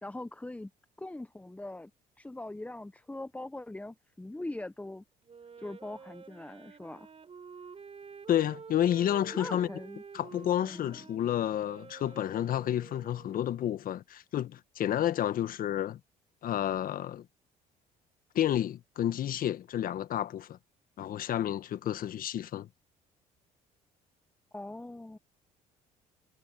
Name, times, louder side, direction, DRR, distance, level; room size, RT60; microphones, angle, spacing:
voice 1, 0.0-0.7 1.0-1.9 2.2-5.0 5.6-7.1 9.3-10.0 10.6-11.0 24.5-25.2, left 2 dB, 10° left, 0.9 m, -41 dB
Wind instrument woodwind instrument, 5.2-13.6, right 6 dB, 35° right, 4.8 m, -49 dB
voice 2, 8.3-9.7 10.1-16.0 16.4-17.2 18.3-20.6 21.0-22.7, left 11 dB, 60° left, 1.4 m, -30 dB
supercardioid pair, 75°, 16 cm